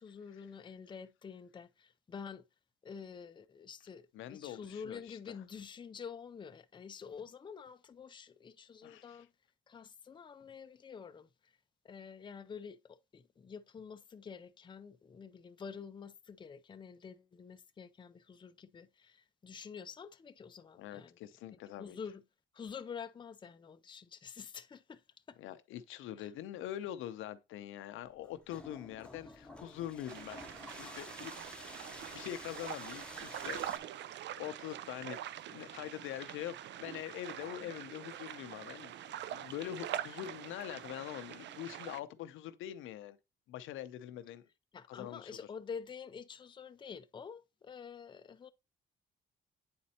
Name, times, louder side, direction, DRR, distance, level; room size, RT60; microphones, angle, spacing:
voice 1, 0.0-2.4 2.8-9.3 9.7-11.5 11.8-21.2 21.8-22.2 22.5-25.0 25.3-25.4 26.2-26.3 44.7-48.5, left 6 dB, 25° left, 0.4 m, -48 dB
voice 2, 4.1-5.4 8.8-9.3 20.8-22.0 25.4-30.5 30.8-31.7 32.1-33.6 34.1-38.9 39.3-43.2 43.5-44.4 44.9-45.4, left 12 dB, 85° left, 0.5 m, -44 dB
sound 1, 28.0-33.8, left 2 dB, 5° left, 0.9 m, -50 dB
sound 2, 30.1-42.0, right 11 dB, 65° right, 0.4 m, -44 dB
8.6 x 4.2 x 2.8 m
cardioid pair, 90°, 20 cm